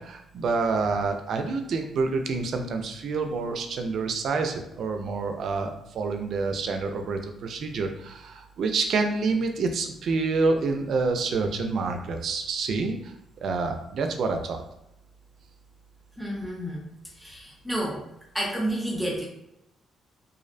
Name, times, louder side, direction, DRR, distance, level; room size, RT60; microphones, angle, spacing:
voice 1, 0.0-13.1 13.4-14.6, right 4 dB, 65° right, 5 dB, 0.3 m, -27 dB
voice 2, 16.2-16.9 17.2-18.1 18.3-19.2, right 1 dB, ahead, -3 dB, 0.6 m, -30 dB
2.4 x 2.0 x 2.5 m, 0.83 s
cardioid pair, 90°, 0 cm